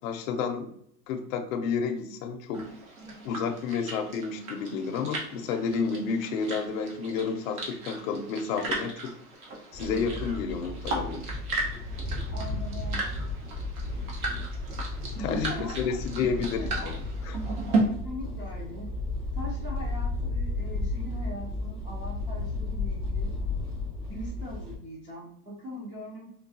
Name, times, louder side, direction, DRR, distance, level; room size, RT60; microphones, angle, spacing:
voice 1, 0.0-0.7 1.1-2.7 3.2-9.1 9.7-11.2 15.2-17.0 17.2-17.4, left 5 dB, 60° left, 4 dB, 0.7 m, -30 dB
sound 1, 2.5-17.8, right 3 dB, 70° right, 1.4 m, -36 dB
sound 2, 9.7-24.7, left 2 dB, 25° right, 1.1 m, -34 dB
voice 2, 12.3-13.2 15.3-17.0 17.8-18.9 19.3-23.3 24.1-26.3, equal, 10° right, -6 dB, 0.5 m, -41 dB
4.5 x 2.3 x 2.7 m, 0.69 s
supercardioid pair, 145°, 46 cm